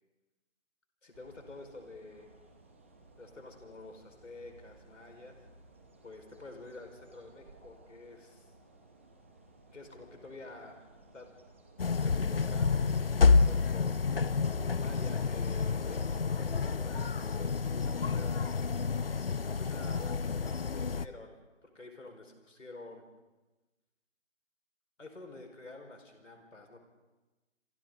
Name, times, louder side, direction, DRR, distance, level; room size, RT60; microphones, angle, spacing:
voice 1, 1.0-2.3 3.2-5.4 6.0-8.5 9.7-11.3 12.0-14.0 14.7-18.6 19.5-21.3 21.6-23.0 25.0-26.8, left 2 dB, 80° left, 4 dB, 5.2 m, -49 dB
sound 1, 1.1-16.9, right 2 dB, 10° right, 0.9 m, -58 dB
sound 2, 11.8-21.1, left 4 dB, 50° left, 0.7 m, -29 dB
29.0 x 28.0 x 4.0 m, 1.1 s
figure-of-eight pair, 165°, 38 cm